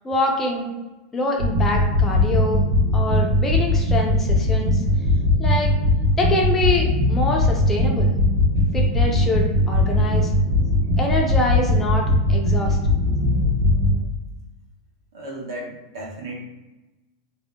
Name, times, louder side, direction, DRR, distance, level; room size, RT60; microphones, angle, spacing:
voice 1, 0.0-0.7 1.1-2.6 2.9-4.8 5.4-5.7 6.2-8.1 8.7-10.3 11.0-12.8, left 2 dB, 10° left, 0 dB, 0.3 m, -25 dB
sound 1, 1.4-14.0, left 1 dB, 55° right, 0.8 m, -19 dB
voice 2, 15.1-16.4, right 1 dB, 75° right, -2 dB, 1.1 m, -34 dB
2.6 x 2.1 x 3.5 m, 1.1 s
supercardioid pair, 180°, 2 cm